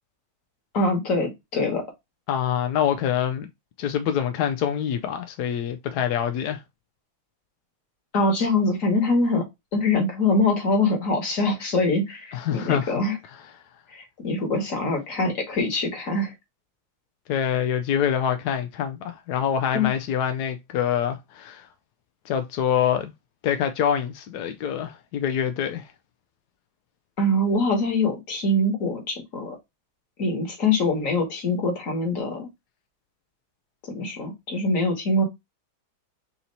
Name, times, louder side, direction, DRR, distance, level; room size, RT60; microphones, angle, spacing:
voice 1, 0.7-1.8 8.1-9.5 9.7-13.2 13.9-16.3 19.7-19.9 27.2-29.6 30.2-32.5 33.8-35.2, left 2 dB, 40° left, 1.8 m, -24 dB
voice 2, 2.3-3.5 3.8-6.6 12.3-12.9 17.3-21.7 22.3-23.1 23.4-25.9, left 9 dB, 75° left, 0.9 m, -25 dB
4.3 x 2.8 x 3.9 m
omnidirectional pair, 2.2 m